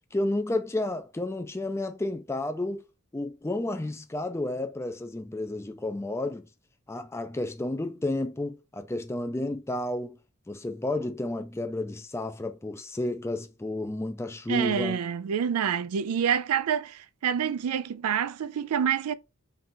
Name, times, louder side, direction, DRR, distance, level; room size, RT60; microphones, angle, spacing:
voice 1, 0.1-2.8 3.1-6.5 6.9-10.2 10.5-15.0, left 2 dB, 10° left, 0.4 m, -31 dB
voice 2, 14.5-19.1, right 8 dB, 85° right, 0.4 m, -27 dB
4.0 x 2.4 x 3.7 m
head